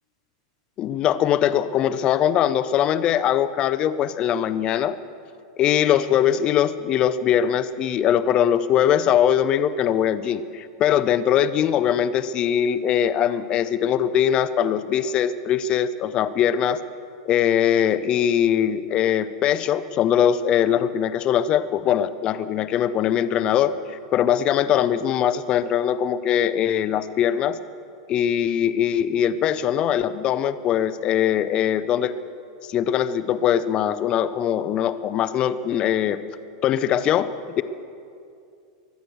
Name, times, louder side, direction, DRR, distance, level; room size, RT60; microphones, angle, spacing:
voice 1, 0.8-5.0 5.6-16.8 17.2-27.6 28.1-32.1 32.7-36.2 36.6-37.6, left 10 dB, 25° left, 13 dB, 0.5 m, -21 dB
23.0 x 8.2 x 6.3 m, 2.4 s
supercardioid pair, 160°, 3 cm